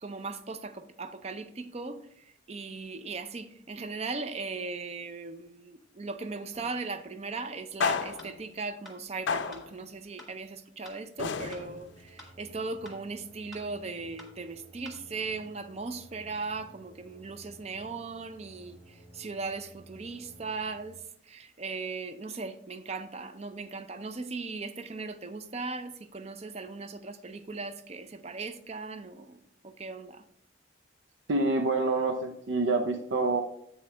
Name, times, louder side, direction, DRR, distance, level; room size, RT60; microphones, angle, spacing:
voice 1, 0.0-29.4 29.6-30.2, right 4 dB, 35° right, 0.5 m, -38 dB
sound 1, 6.5-6.8 7.8-8.5 9.3-9.8 11.2-12.0, left 5 dB, 75° left, 0.5 m, -32 dB
sound 2, 8.2-8.3 8.8-9.0 9.5-9.6 10.2-10.3 10.8-11.0 11.5-11.6 12.2-12.3 12.8-13.0 13.5-13.6 14.2-14.3 14.8-15.0, left 1 dB, ahead, 1.3 m, -49 dB
sound 3, 11.3-20.8, right 1 dB, 15° right, 1.8 m, -55 dB
voice 2, 31.3-33.4, right 3 dB, 85° right, 0.6 m, -27 dB
7.9 x 6.3 x 3.3 m
head